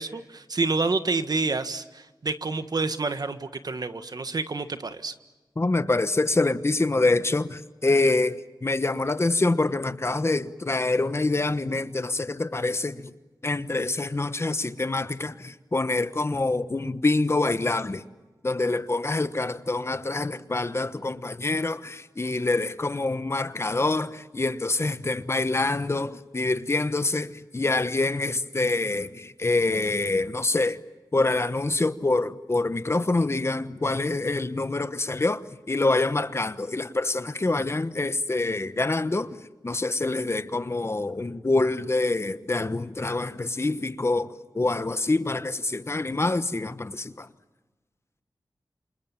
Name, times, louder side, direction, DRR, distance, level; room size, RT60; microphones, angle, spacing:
voice 1, 0.0-5.1, right 3 dB, 55° right, 1.5 m, -28 dB
voice 2, 5.6-13.1 13.4-18.0 18.4-30.8 31.1-39.4 39.6-47.3, left 2 dB, 35° left, 1.1 m, -26 dB
28.5 x 27.0 x 7.3 m
wide cardioid pair, 105°, 8 cm